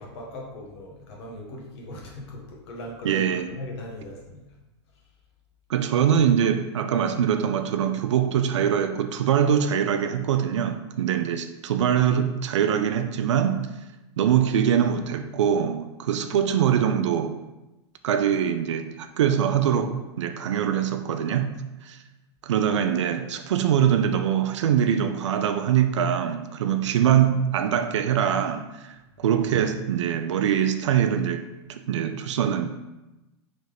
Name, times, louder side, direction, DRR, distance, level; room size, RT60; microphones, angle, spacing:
voice 1, 0.0-4.4, left 1 dB, 65° left, 1.3 m, -39 dB
voice 2, 3.0-3.5 5.7-13.8 14.2-17.4 18.0-21.5 21.8-22.0 22.4-32.7, right 9 dB, 85° right, 0.4 m, -23 dB
3.9 x 3.2 x 3.3 m
hypercardioid pair, 125°, 15 cm